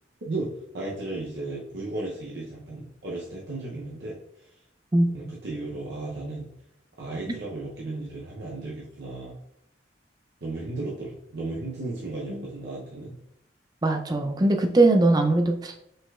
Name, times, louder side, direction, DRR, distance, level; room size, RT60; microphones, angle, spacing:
voice 1, 0.2-4.5 5.1-6.5 7.0-9.4 10.4-13.2, right 2 dB, 65° right, -4 dB, 0.7 m, -35 dB
voice 2, 13.8-15.8, right 2 dB, 20° right, 5 dB, 0.4 m, -21 dB
5.1 x 3.9 x 2.4 m, 0.78 s
head